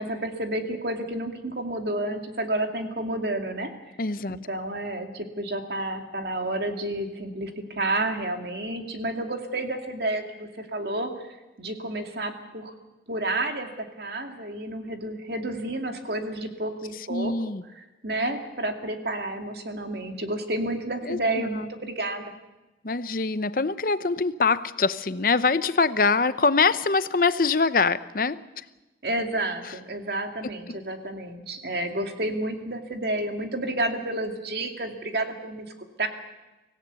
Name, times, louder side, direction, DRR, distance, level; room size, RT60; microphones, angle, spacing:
voice 1, 0.0-3.7 4.3-11.1 11.6-12.7 13.1-17.3 18.0-22.2 29.0-35.6 36.0-36.1, right 1 dB, 60° right, 4 dB, 2.4 m, -30 dB
voice 2, 4.0-4.4 17.1-17.6 21.0-21.7 22.8-28.6 29.7-29.8 30.7-30.8, left 4 dB, 50° left, 14 dB, 0.7 m, -24 dB
25.0 x 16.5 x 8.2 m, 1.1 s
head